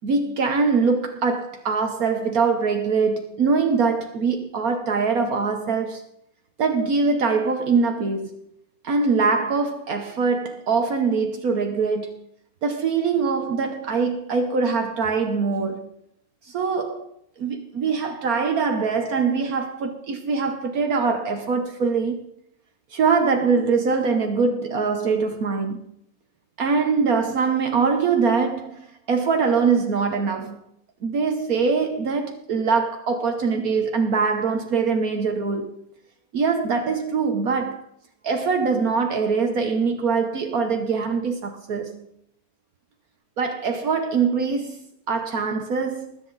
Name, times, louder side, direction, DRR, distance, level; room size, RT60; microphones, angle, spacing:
voice 1, 0.0-6.0 6.6-8.4 8.8-12.2 12.6-15.8 16.4-17.1 17.4-22.2 22.9-25.8 26.6-30.6 31.0-35.7 36.3-37.8 38.2-42.1 43.4-46.2, right 5 dB, 65° right, 1.5 m, -23 dB
20.5 x 8.2 x 4.0 m
omnidirectional pair, 1.7 m